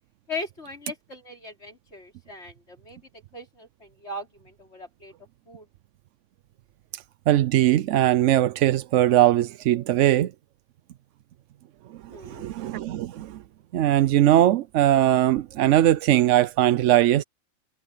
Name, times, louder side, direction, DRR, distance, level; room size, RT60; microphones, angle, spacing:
voice 1, 0.3-3.0 3.3-5.1 5.5-5.7 12.1-12.4, left 2 dB, 50° left, 5.0 m, -39 dB
voice 2, 6.9-10.3 12.0-13.4 13.7-17.2, right 13 dB, 70° right, 0.9 m, -20 dB
omnidirectional pair, 1.4 m